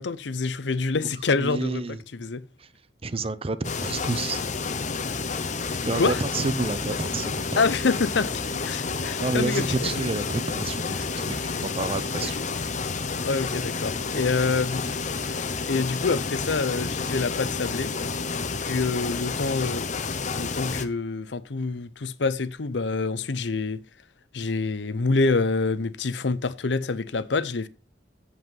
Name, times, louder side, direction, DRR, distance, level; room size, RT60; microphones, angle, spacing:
voice 1, 0.0-1.8 2.1-2.4 5.9-6.2 7.6-9.7 11.5-11.6 12.2-12.3 13.2-14.9 15.7-17.9 18.6-19.8 20.4-23.8 24.3-27.7, left 4 dB, 75° left, 0.7 m, -26 dB
voice 2, 1.4-2.0 2.6-2.7 3.0-4.4 5.8-7.6 8.8-8.9 9.2-12.4, right 3 dB, 35° right, 0.6 m, -29 dB
sound 1, 3.6-20.9, left 4 dB, 45° left, 0.8 m, -30 dB
8.0 x 7.9 x 5.4 m
head